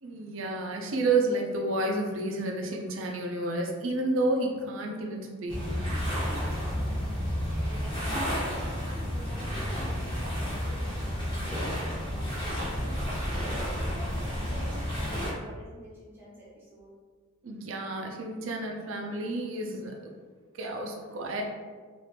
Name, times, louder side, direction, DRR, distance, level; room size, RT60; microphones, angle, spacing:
voice 1, 0.0-6.0 17.4-20.1 20.6-21.4, right 2 dB, 65° right, 1 dB, 0.5 m, -30 dB
sound 1, 5.5-15.3, equal, 20° left, 1.2 m, -31 dB
voice 2, 7.2-13.2 13.4-16.9, equal, 10° right, -8 dB, 0.9 m, -48 dB
3.3 x 2.5 x 2.8 m, 1.5 s
head